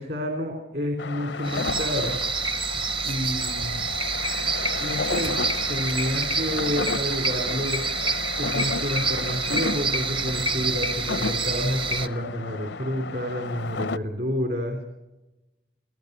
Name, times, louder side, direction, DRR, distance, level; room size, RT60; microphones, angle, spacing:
voice 1, 0.0-2.1 3.0-3.8 4.8-5.4 5.7-7.8 8.4-14.8, equal, 55° right, 3 dB, 3.3 m, -29 dB
sound 1, 1.0-14.0, left 4 dB, 80° left, 0.6 m, -33 dB
sound 2, 1.5-12.1, right 4 dB, 30° right, 0.8 m, -28 dB
27.0 x 17.0 x 6.7 m, 1.0 s
head